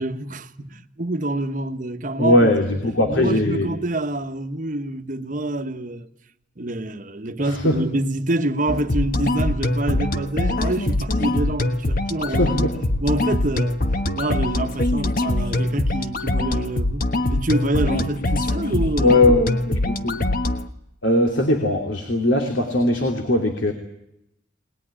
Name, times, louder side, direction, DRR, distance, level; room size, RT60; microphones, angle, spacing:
voice 1, 0.0-2.8 3.1-6.1 6.6-12.7 13.0-13.8 14.2-19.2, right 1 dB, 40° right, 1.1 m, -26 dB
voice 2, 2.2-3.7 7.4-7.8 12.4-12.7 19.0-20.2 21.0-23.7, left 1 dB, 75° left, 2.8 m, -19 dB
sound 1, 8.7-20.7, left 1 dB, 45° left, 1.3 m, -23 dB
21.5 x 20.0 x 9.9 m
head